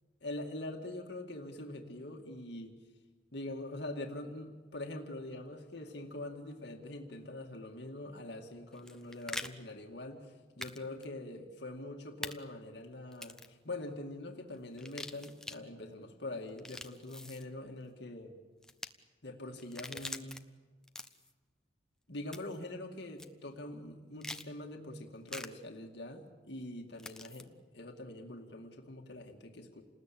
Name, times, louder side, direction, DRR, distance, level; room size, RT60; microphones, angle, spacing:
voice 1, 0.2-2.7 3.3-18.4 19.2-20.4 22.1-29.8, left 1 dB, 60° left, 3 dB, 2.1 m, -44 dB
sound 1, 8.7-9.5 10.6-10.8 11.0-11.1 12.2-12.3 13.1-13.5 14.7-15.6 16.5-17.4 18.6-18.9 19.6-20.4 20.8-21.3 22.3-22.6 23.2-23.3 24.2-24.5 25.3-25.5 27.0-27.4, left 1 dB, 5° left, 0.8 m, -43 dB
29.0 x 20.0 x 8.6 m, 1.4 s
head